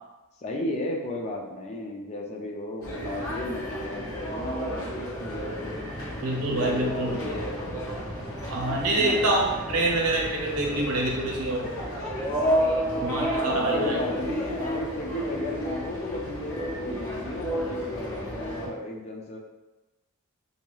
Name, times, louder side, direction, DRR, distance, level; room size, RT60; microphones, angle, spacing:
voice 1, 0.4-5.9 6.5-7.9 8.9-9.2 13.4-19.4, left 1 dB, 30° left, 1 dB, 0.3 m, -34 dB
sound 1, 2.8-18.7, equal, 65° left, 0.9 m, -31 dB
voice 2, 6.2-7.2 8.5-11.7 13.0-14.0, right 2 dB, 80° right, -1 dB, 0.6 m, -26 dB
3.1 x 2.7 x 2.3 m, 1.1 s
head